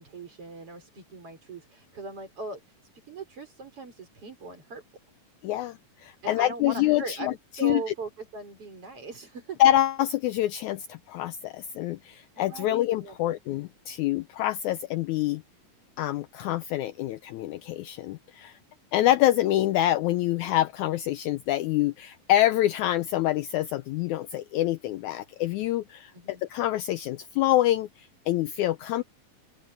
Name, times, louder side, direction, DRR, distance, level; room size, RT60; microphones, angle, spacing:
voice 1, 0.0-2.6 3.1-4.8 6.2-9.6 12.4-13.4 26.1-26.4, right 3 dB, 40° right, 6.2 m, -39 dB
voice 2, 5.4-7.9 9.6-15.4 16.0-18.6 18.9-29.0, left 14 dB, 90° left, 1.7 m, -26 dB
open air
omnidirectional pair, 4.0 m